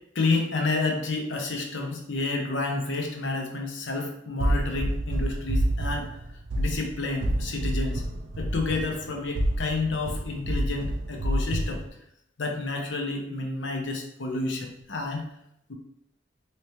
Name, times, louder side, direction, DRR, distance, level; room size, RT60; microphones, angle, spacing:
voice 1, 0.1-6.1 6.6-8.0 8.4-11.8 12.4-15.2, left 3 dB, 70° left, 2 dB, 0.7 m, -30 dB
sound 1, 4.4-11.9, right 1 dB, 75° right, 0.4 m, -28 dB
3.2 x 2.9 x 3.0 m, 0.76 s
head